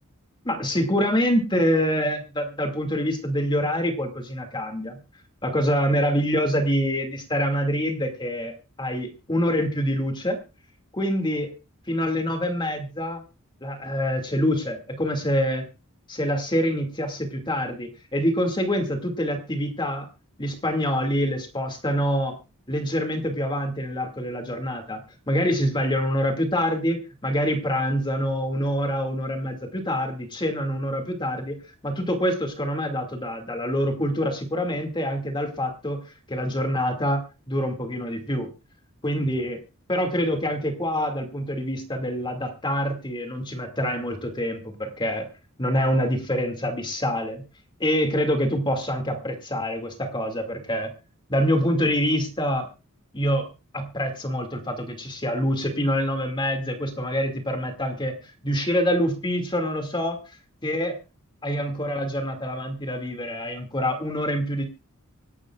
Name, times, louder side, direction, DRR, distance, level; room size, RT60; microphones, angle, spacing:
voice 1, 0.4-5.0 5.4-10.4 10.9-11.5 11.9-13.2 13.6-15.7 16.1-20.1 20.4-22.4 22.7-25.0 25.3-31.6 31.8-38.5 39.0-39.6 39.9-45.3 45.6-47.4 47.8-50.9 51.3-52.7 53.1-53.5 53.7-58.1 58.4-60.2 60.6-61.0 61.4-64.6, equal, 20° left, 5 dB, 2.3 m, -26 dB
26.0 x 11.0 x 2.4 m, 0.30 s
head